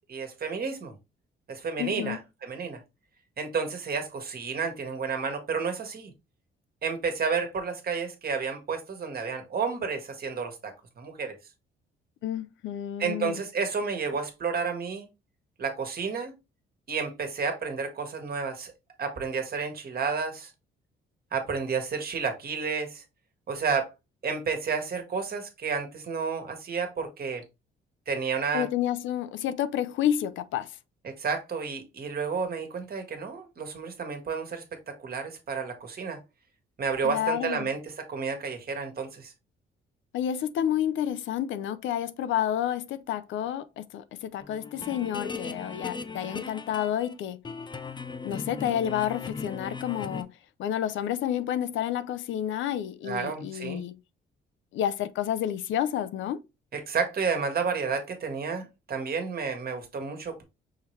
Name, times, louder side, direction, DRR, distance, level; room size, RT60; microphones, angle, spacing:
voice 1, 0.1-0.9 1.5-2.8 3.4-6.1 6.8-11.4 13.0-15.1 15.6-16.3 16.9-18.7 19.0-20.5 21.3-23.0 23.5-23.9 24.2-27.4 28.1-28.6 31.0-36.2 36.8-39.3 53.0-53.8 56.7-60.4, right 5 dB, 50° right, 1.4 m, -31 dB
voice 2, 1.8-2.2 12.2-13.4 28.5-30.8 37.0-37.7 40.1-47.4 48.2-50.3 50.6-54.0 54.7-56.4, left 10 dB, 75° left, 0.5 m, -30 dB
sound 1, 44.4-47.1 47.4-50.2, left 4 dB, 25° left, 0.5 m, -38 dB
5.8 x 2.9 x 3.1 m
cardioid pair, 90°, 20 cm